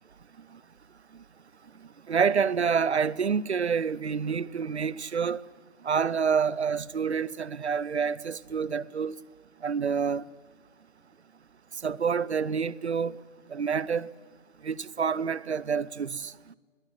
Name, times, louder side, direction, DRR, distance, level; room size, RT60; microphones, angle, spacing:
voice 1, 2.1-5.4 5.8-9.2 9.6-10.2 11.8-13.2 13.5-14.1 14.6-16.3, right 6 dB, 60° right, 0.7 m, -27 dB
21.0 x 17.0 x 9.4 m
figure-of-eight pair, 145°, 37 cm